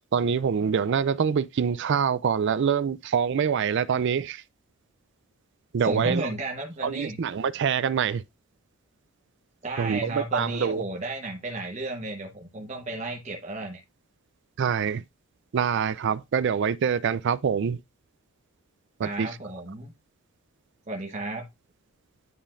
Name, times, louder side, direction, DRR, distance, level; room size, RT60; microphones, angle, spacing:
voice 1, 0.1-4.4 5.7-6.2 6.8-8.2 9.8-10.8 14.6-15.0 15.5-17.8 19.0-19.3, right 7 dB, 55° right, 0.4 m, -25 dB
voice 2, 5.8-7.2 9.6-13.8 19.0-19.9 20.9-21.5, right 2 dB, 35° right, 1.1 m, -33 dB
9.8 x 5.1 x 2.5 m
head